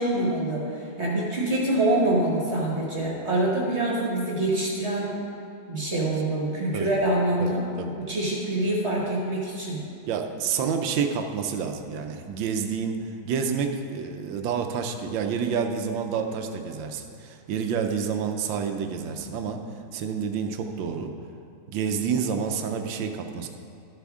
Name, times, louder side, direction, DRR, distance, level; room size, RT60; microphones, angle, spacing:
voice 1, 0.0-5.1 5.7-7.6 8.0-9.8, right 1 dB, 40° right, -3 dB, 1.4 m, -25 dB
voice 2, 7.4-7.9 10.1-19.6 19.9-21.1 21.7-23.5, right 6 dB, 80° right, 5 dB, 1.4 m, -29 dB
12.0 x 7.7 x 3.6 m, 2.6 s
omnidirectional pair, 2.1 m